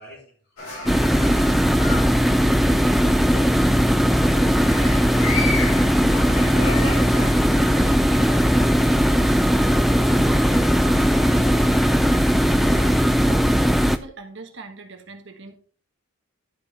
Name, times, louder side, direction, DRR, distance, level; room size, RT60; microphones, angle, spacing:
voice 1, 0.0-1.9, equal, 50° left, -1 dB, 3.8 m, -48 dB
sound 1, 0.6-13.1, left 2 dB, 85° left, 5.3 m, -34 dB
sound 2, 0.9-14.0, equal, ahead, 0.3 m, -18 dB
voice 2, 9.9-11.6 13.2-15.6, right 3 dB, 55° right, 4 dB, 1.3 m, -41 dB
11.5 x 5.3 x 4.1 m, 0.43 s
head